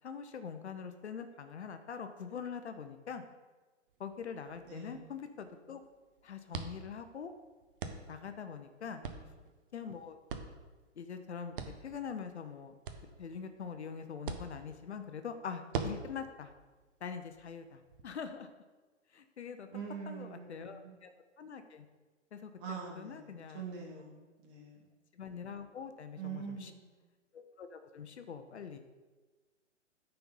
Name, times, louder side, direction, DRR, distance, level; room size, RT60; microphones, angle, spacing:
voice 1, 0.0-3.2 4.0-5.8 6.2-7.3 8.1-9.0 9.7-10.2 11.0-11.5 11.8-12.7 13.2-16.5 17.0-18.5 19.1-19.7 20.1-21.1 21.4-21.9 22.3-23.6 25.1-26.7 27.3-28.8, left 6 dB, 60° left, 8 dB, 0.8 m, -44 dB
sound 1, 3.9-18.0, right 5 dB, 45° right, 0.9 m, -46 dB
voice 2, 19.7-20.9 22.6-24.9 26.2-26.9, right 6 dB, 25° right, -2 dB, 2.3 m, -44 dB
9.3 x 4.5 x 5.4 m, 1.3 s
figure-of-eight pair, 120°, 37 cm